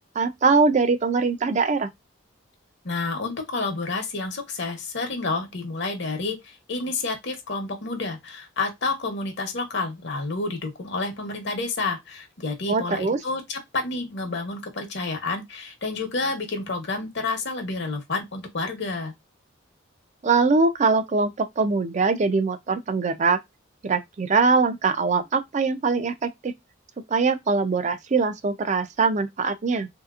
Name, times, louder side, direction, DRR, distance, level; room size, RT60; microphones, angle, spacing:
voice 1, 0.2-1.9 12.7-13.2 20.2-23.4 23.8-26.5 27.1-29.9, right 4 dB, 35° right, 0.4 m, -22 dB
voice 2, 2.8-19.1, left 3 dB, 60° left, 1.0 m, -29 dB
3.3 x 2.8 x 2.4 m
head